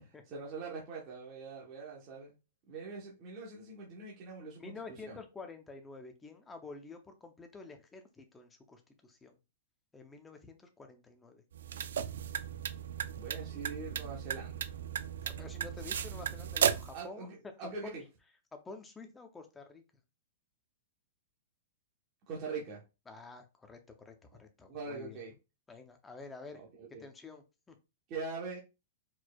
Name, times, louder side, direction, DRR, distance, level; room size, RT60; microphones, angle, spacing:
voice 1, 0.3-2.3 2.7-4.7 5.1-5.2 13.1-14.7 16.9-18.0 22.3-22.8 24.7-25.3 26.5-27.0 28.1-28.6, right 4 dB, 25° right, 1.0 m, -43 dB
voice 2, 4.6-9.3 9.9-11.4 15.2-17.5 17.8-18.0 18.5-19.8 23.1-25.2 25.7-26.7 27.0-27.8, left 4 dB, 5° left, 0.6 m, -49 dB
sound 1, 11.5-17.0, right 8 dB, 80° right, 0.4 m, -35 dB
4.6 x 4.3 x 2.3 m
supercardioid pair, 175°, 0 cm